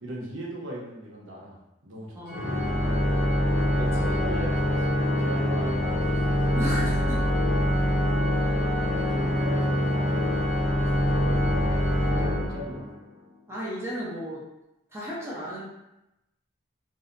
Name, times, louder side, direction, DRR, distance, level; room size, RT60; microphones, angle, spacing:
voice 1, 0.0-3.1 3.7-6.0 6.3-6.4 8.4-10.3 10.7-12.8, equal, 85° right, -4 dB, 0.7 m, -39 dB
voice 2, 2.2-2.5 3.8-4.2 6.6-7.2 8.4-8.5 13.5-14.4 14.9-15.6, equal, 15° right, -7 dB, 0.6 m, -34 dB
Organ, 2.3-13.1, equal, 60° left, 0.6 m, -24 dB
2.6 x 2.1 x 2.5 m, 0.90 s
head